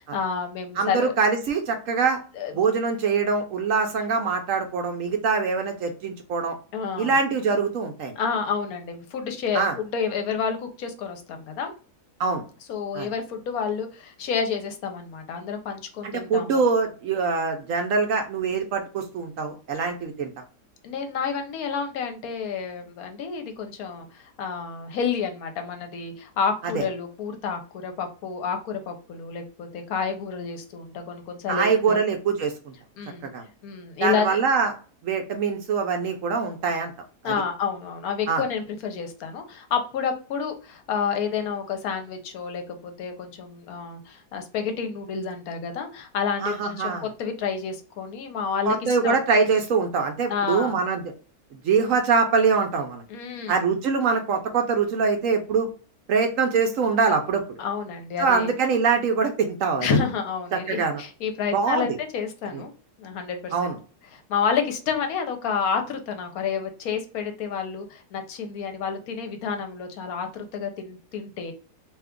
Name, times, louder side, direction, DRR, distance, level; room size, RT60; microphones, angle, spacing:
voice 1, 0.0-1.1 2.3-2.5 6.7-7.2 8.2-9.7 9.9-11.7 12.7-16.6 20.8-32.0 33.0-33.3 33.6-34.4 37.2-49.2 50.3-50.8 53.1-53.6 57.6-58.5 59.8-62.7 63.0-63.7 64.1-71.5, left 6 dB, 70° left, 6 dB, 1.0 m, -29 dB
voice 2, 0.8-2.2 2.5-6.6 7.0-8.2 9.5-9.7 12.2-12.4 12.9-13.1 16.0-20.3 26.7-26.8 31.5-32.7 33.2-33.5 34.0-34.7 35.0-36.9 37.2-37.3 38.3-38.4 46.4-47.0 48.7-51.0 51.6-53.0 53.5-55.7 56.1-57.4 58.2-60.0 60.5-61.0 61.5-61.9 62.5-62.6 63.5-63.8, right 5 dB, 65° right, 4 dB, 0.9 m, -23 dB
2.7 x 2.3 x 3.5 m, 0.37 s
omnidirectional pair, 1.7 m